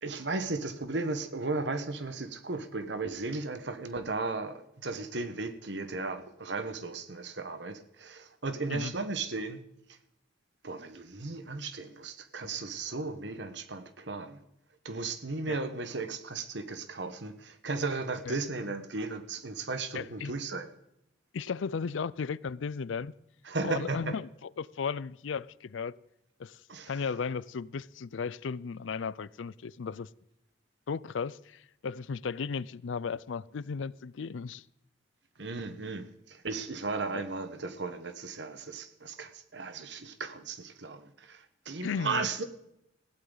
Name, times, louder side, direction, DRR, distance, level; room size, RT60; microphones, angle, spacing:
voice 1, 0.0-9.6 10.6-14.4 14.8-20.7 23.5-24.0 26.7-26.9 35.4-42.4, right 3 dB, 65° right, 1.3 m, -35 dB
voice 2, 19.9-20.3 21.3-23.1 23.6-26.0 26.4-30.1 30.9-34.7 37.1-37.2 41.8-42.3, left 5 dB, 80° left, 0.5 m, -35 dB
20.0 x 15.5 x 4.0 m
head